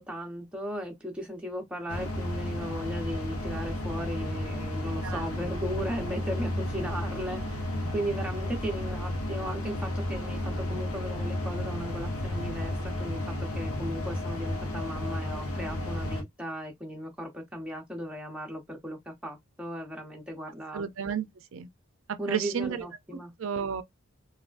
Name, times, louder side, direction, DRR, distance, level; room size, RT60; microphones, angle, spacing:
voice 1, 0.0-7.6 7.9-20.8 22.2-23.3, equal, 5° right, 0.7 m, -36 dB
sound 1, 1.9-16.2, left 1 dB, 90° left, 0.8 m, -33 dB
voice 2, 20.7-21.7 22.3-22.9 23.1-23.8, right 7 dB, 65° right, 0.4 m, -32 dB
3.4 x 2.3 x 2.4 m
head